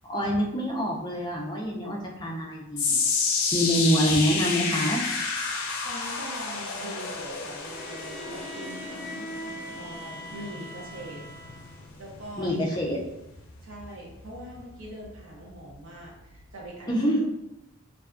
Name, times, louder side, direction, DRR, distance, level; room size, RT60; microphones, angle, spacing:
voice 1, 0.0-3.0 3.5-5.0 12.4-13.0 16.9-17.2, equal, 20° left, -2 dB, 0.4 m, -26 dB
sound 1, 2.8-15.1 15.4-15.8 16.4-16.5, left 4 dB, 85° left, 0.5 m, -31 dB
voice 2, 5.8-9.3 9.7-11.2 12.0-13.2 13.6-17.1, right 1 dB, 75° right, -4 dB, 0.8 m, -43 dB
Bowed string instrument, 7.6-11.9, equal, 30° right, 1.0 m, -42 dB
2.5 x 2.2 x 2.4 m, 0.89 s
head